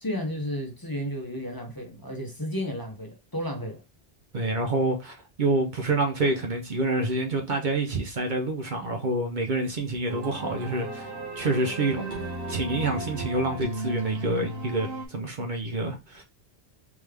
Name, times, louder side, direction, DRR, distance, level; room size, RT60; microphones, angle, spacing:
voice 1, 0.0-3.8, equal, 20° left, 1.0 m, -33 dB
voice 2, 4.3-11.1 11.4-12.2 12.5-16.2, right 2 dB, 55° right, 0.8 m, -27 dB
sound 1, 10.1-15.1, right 2 dB, 70° right, 1.5 m, -35 dB
3.6 x 3.2 x 3.3 m
omnidirectional pair, 1.1 m